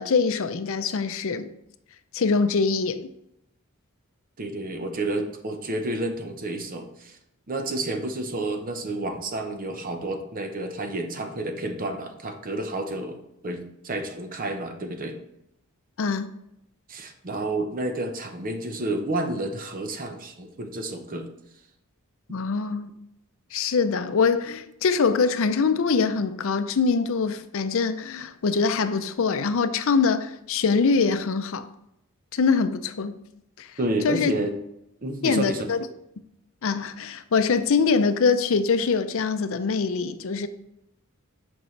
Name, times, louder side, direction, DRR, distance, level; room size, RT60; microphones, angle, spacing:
voice 1, 0.0-1.5 2.1-3.0 16.0-16.3 22.3-22.9 23.5-31.7 32.3-33.2 33.6-33.7 34.0-34.3 35.2-35.8 36.6-40.5, left 5 dB, 65° left, 0.5 m, -23 dB
voice 2, 4.4-7.2 7.5-15.2 16.9-21.3 33.8-34.6 35.0-35.7, right 2 dB, 40° right, 0.8 m, -30 dB
8.1 x 5.4 x 3.2 m
head